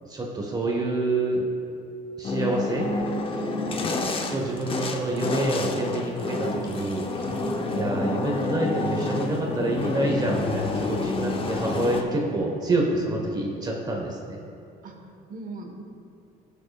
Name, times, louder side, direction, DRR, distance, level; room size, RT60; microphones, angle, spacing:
voice 1, 0.0-1.5 2.2-2.9 4.3-7.1 7.7-14.4, right 2 dB, 25° right, -1 dB, 1.2 m, -27 dB
sound 1, 2.2-12.0, left 3 dB, 30° left, 0.8 m, -29 dB
voice 2, 3.3-3.9 7.2-7.8 14.8-15.8, right 2 dB, 50° right, 3 dB, 1.4 m, -39 dB
15.5 x 6.8 x 2.4 m, 2.7 s
cardioid pair, 110°, 17 cm